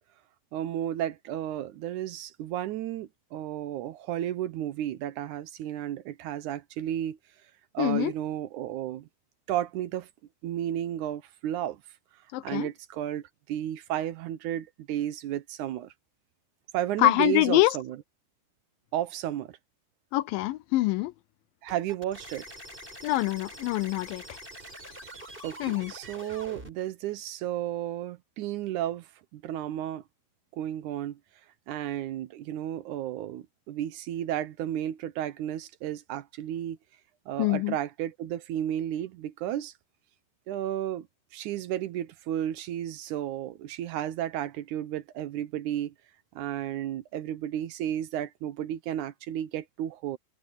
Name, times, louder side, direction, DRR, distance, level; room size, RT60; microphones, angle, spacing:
voice 1, 0.5-7.2 7.7-9.1 9.5-10.1 10.4-11.8 12.4-15.9 16.7-18.0 18.9-19.6 21.6-22.5 25.4-30.0 30.5-31.2 31.7-36.8 37.3-39.7 40.5-41.1 41.3-45.9 46.4-50.2, right 11 dB, 75° right, 1.9 m, -33 dB
voice 2, 7.8-8.1 12.3-12.7 17.0-17.8 20.1-21.1 23.0-24.4 25.6-25.9 37.4-37.8, left 17 dB, 80° left, 2.1 m, -25 dB
sound 1, 21.7-26.7, right 1 dB, 15° right, 7.9 m, -45 dB
omnidirectional pair, 4.3 m